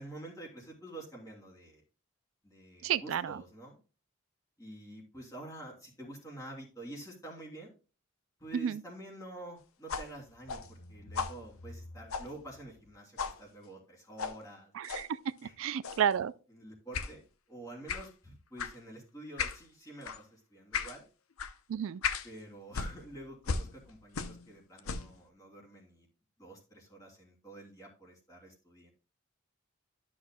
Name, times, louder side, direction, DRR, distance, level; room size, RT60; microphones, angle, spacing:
voice 1, 0.0-1.8 2.4-3.8 4.6-7.7 8.4-14.7 15.4-15.5 16.5-17.2 17.5-21.0 22.2-26.1 26.4-28.9, right 1 dB, 15° left, 2.9 m, -48 dB
voice 2, 2.8-3.4 8.5-8.8 14.7-16.3 21.7-22.0, right 8 dB, 65° right, 0.3 m, -32 dB
sound 1, 9.9-12.9 13.2-13.4 14.2-14.4 14.8-15.1 15.8-16.1 16.9-17.1 17.9-18.1 18.6-18.8 19.4-19.6 20.0-20.2 20.7-21.0 21.4-21.5 22.0-22.3 22.7-24.5 24.8-25.2, left 5 dB, 80° left, 0.7 m, -37 dB
12.5 x 6.3 x 2.2 m
head